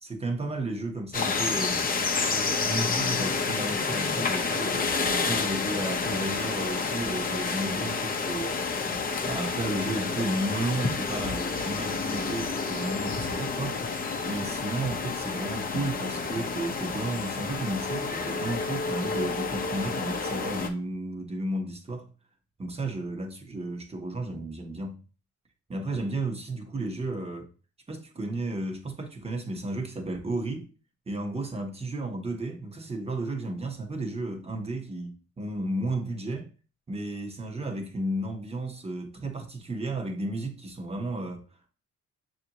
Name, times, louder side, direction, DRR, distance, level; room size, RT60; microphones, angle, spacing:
voice 1, 0.0-1.8 2.6-4.9 5.2-8.6 9.2-22.1 22.6-25.0 25.7-27.5 27.9-30.7 31.1-36.5 36.9-41.4, right 2 dB, 20° right, 1.0 m, -33 dB
sound 1, 1.1-20.7, left 4 dB, 30° left, 0.7 m, -29 dB
6.4 x 2.6 x 2.9 m
cardioid pair, 90°, 30 cm